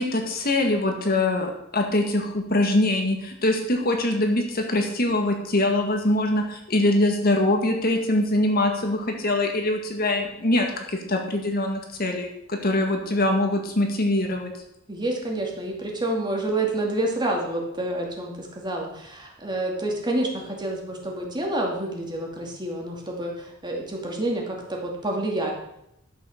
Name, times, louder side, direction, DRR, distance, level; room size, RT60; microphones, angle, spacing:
voice 1, 0.0-14.5, left 1 dB, 45° left, 3 dB, 1.8 m, -23 dB
voice 2, 14.9-25.5, right 1 dB, 20° right, -1 dB, 2.5 m, -28 dB
12.0 x 7.7 x 6.5 m, 0.80 s
head